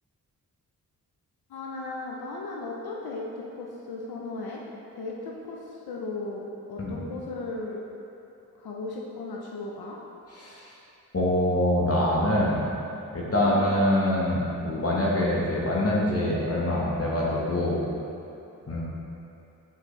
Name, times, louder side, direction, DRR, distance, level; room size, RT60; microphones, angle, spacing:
voice 1, 1.5-4.6 5.0-7.8 8.6-10.0 13.4-13.7, left 3 dB, 80° left, -2 dB, 0.7 m, -36 dB
voice 2, 11.1-12.7 13.1-17.8 18.7-18.8, left 1 dB, 40° left, -5 dB, 1.4 m, -24 dB
8.7 x 5.3 x 3.2 m, 2.8 s
cardioid pair, 45°, 37 cm